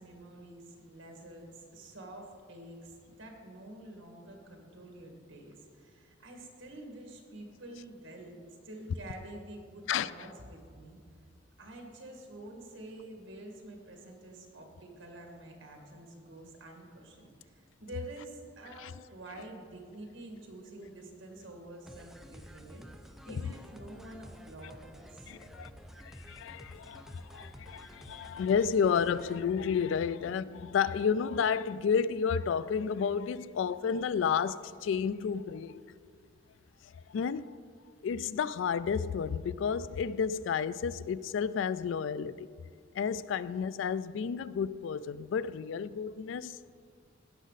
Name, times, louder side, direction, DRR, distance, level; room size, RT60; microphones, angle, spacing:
voice 1, 0.0-8.4 8.6-11.2 11.6-25.3, right 1 dB, 75° right, 1.9 m, -48 dB
sound 1, 21.9-29.4, equal, ahead, 0.5 m, -51 dB
voice 2, 25.3-25.7 26.0-35.8 36.8-37.6 38.0-42.5 42.9-46.6, left 6 dB, 70° left, 0.3 m, -31 dB
16.5 x 6.3 x 4.0 m
head